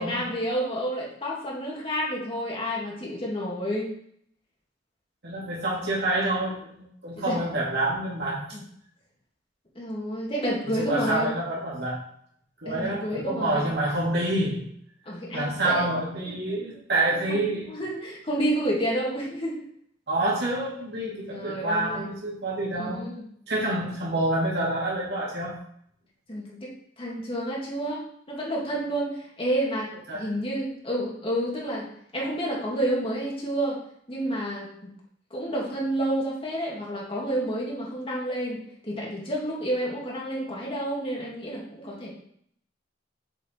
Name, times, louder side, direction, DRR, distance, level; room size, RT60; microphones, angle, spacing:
voice 1, 0.0-3.9 7.2-7.4 8.5-8.6 9.8-11.3 12.6-13.7 15.1-15.9 16.3-16.6 17.3-17.4 17.7-19.7 21.3-22.1 22.7-23.2 26.3-26.7 27.0-29.1 29.4-29.9 30.1-31.8 32.1-33.8 34.1-34.7 35.3-42.1, right 1 dB, 30° left, -4 dB, 2.4 m, -29 dB
voice 2, 5.2-8.4 10.7-12.0 12.6-14.7 15.3-17.8 20.1-23.0 23.5-25.6 30.1-30.3, right 1 dB, 65° right, -6 dB, 2.7 m, -27 dB
7.6 x 5.0 x 4.6 m, 0.67 s
head